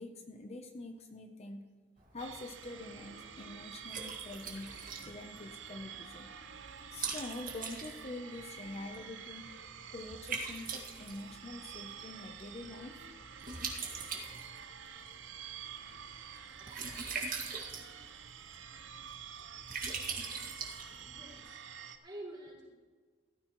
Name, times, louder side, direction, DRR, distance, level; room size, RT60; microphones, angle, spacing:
voice 1, 0.0-1.7 2.1-4.7 5.1-6.3 6.9-9.4 9.9-13.1, left 2 dB, 35° left, 5 dB, 0.7 m, -45 dB
Liquid, 2.0-21.4, right 5 dB, 50° right, 1.9 m, -44 dB
sound 1, 2.2-22.0, right 8 dB, 85° right, 0.8 m, -49 dB
voice 2, 20.9-21.6 22.0-22.6, right 1 dB, 25° right, -4 dB, 4.3 m, -48 dB
16.0 x 13.5 x 3.1 m, 1.5 s
head